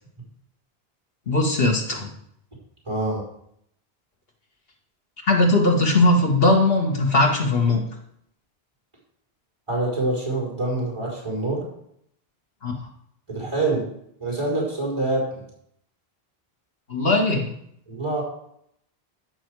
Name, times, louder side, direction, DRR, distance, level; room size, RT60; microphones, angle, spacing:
voice 1, 1.3-2.1 5.2-7.8 12.6-12.7 16.9-17.5, left 2 dB, 70° left, 1 dB, 2.1 m, -19 dB
voice 2, 2.9-3.2 9.7-11.7 13.3-13.8 14.2-15.4 17.9-18.2, right 2 dB, 30° right, -5 dB, 4.6 m, -25 dB
14.5 x 6.3 x 4.8 m, 0.71 s
omnidirectional pair, 1.0 m